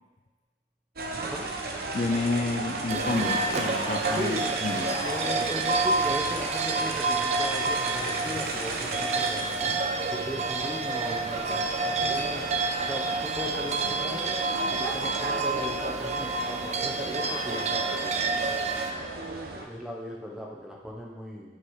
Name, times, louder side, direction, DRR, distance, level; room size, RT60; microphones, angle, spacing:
sound 1, 1.0-19.6, right 2 dB, 60° right, 0.9 m, -34 dB
voice 1, 1.9-5.0, left 3 dB, 45° left, 4 dB, 0.5 m, -30 dB
sound 2, 2.9-18.9, right 3 dB, 40° right, 0.6 m, -29 dB
voice 2, 4.1-4.6 5.0-9.7 10.1-12.4 12.8-14.4 14.8-18.1 19.6-21.6, equal, 5° right, -2 dB, 1.1 m, -37 dB
9.1 x 5.3 x 4.8 m, 1.1 s
head